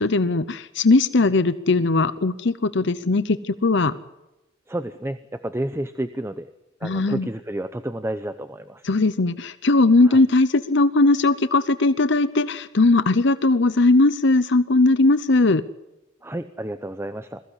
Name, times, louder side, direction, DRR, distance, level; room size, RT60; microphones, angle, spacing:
voice 1, 0.0-3.9 6.8-7.3 8.8-15.6, left 2 dB, 65° left, 13 dB, 0.8 m, -19 dB
voice 2, 4.7-6.5 6.8-8.8 10.1-10.2 16.2-17.4, right 1 dB, 15° right, 10 dB, 0.7 m, -30 dB
21.5 x 15.5 x 9.9 m, 0.96 s
head